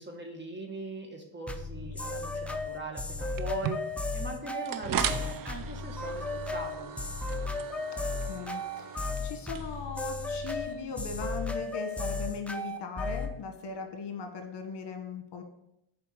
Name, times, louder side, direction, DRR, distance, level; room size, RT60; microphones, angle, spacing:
voice 1, 0.0-3.8 4.1-6.9, right 2 dB, 25° right, 2 dB, 1.7 m, -40 dB
sound 1, 1.5-13.3, left 2 dB, 5° left, 0.5 m, -34 dB
sound 2, 3.4-11.3, right 9 dB, 45° right, 0.5 m, -39 dB
voice 2, 8.0-15.4, left 5 dB, 60° left, 5 dB, 1.4 m, -39 dB
7.3 x 4.6 x 5.9 m, 0.80 s
cardioid pair, 110°, 47 cm